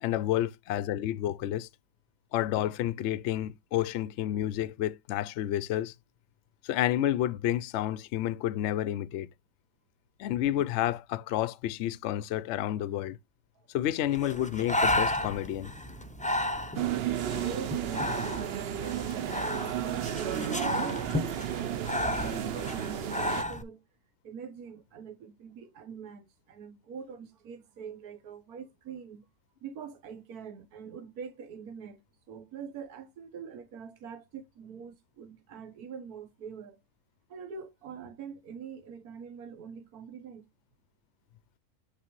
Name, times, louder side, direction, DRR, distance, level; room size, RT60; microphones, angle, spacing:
voice 1, 0.0-1.7 2.3-5.9 6.6-9.3 10.2-13.2 13.7-15.7, left 12 dB, 65° left, 0.7 m, -30 dB
Breathing, 14.1-23.6, left 1 dB, 10° left, 0.5 m, -33 dB
voice 2, 16.4-23.8 24.2-29.2 29.6-36.8 37.3-40.5, right 6 dB, 75° right, 1.6 m, -44 dB
sound 1, 16.7-23.4, right 10 dB, 60° right, 0.7 m, -33 dB
8.1 x 6.1 x 3.0 m
omnidirectional pair, 1.6 m